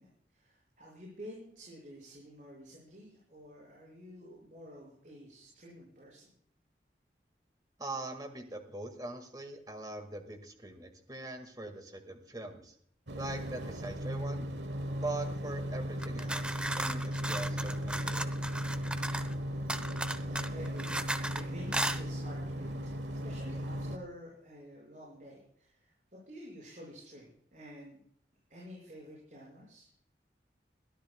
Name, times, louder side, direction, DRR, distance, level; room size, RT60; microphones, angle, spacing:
voice 1, 0.0-6.3 19.7-19.8 20.2-28.0 28.5-29.9, equal, 45° right, -5 dB, 6.1 m, -50 dB
voice 2, 7.8-12.8 13.2-14.5 15.0-18.3, right 2 dB, 20° right, 6 dB, 1.9 m, -42 dB
sound 1, 13.1-24.0, equal, 85° right, 1.3 m, -37 dB
sound 2, 16.0-19.3 19.7-21.4 21.7-22.0, right 1 dB, 5° right, 0.7 m, -35 dB
23.0 x 13.5 x 2.3 m, 0.64 s
head